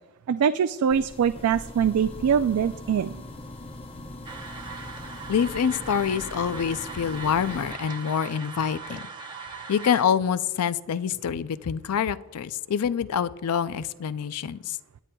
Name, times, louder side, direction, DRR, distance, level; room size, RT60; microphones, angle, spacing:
voice 1, 0.3-3.2, right 7 dB, 85° right, 10 dB, 0.3 m, -23 dB
sound 1, 0.9-7.7, left 1 dB, 25° left, 0.6 m, -41 dB
sound 2, 4.2-10.0, right 4 dB, 20° right, 0.8 m, -39 dB
voice 2, 5.3-9.1 9.7-14.8, left 7 dB, 90° left, 15 dB, 0.4 m, -26 dB
21.5 x 10.0 x 2.3 m, 1.1 s
head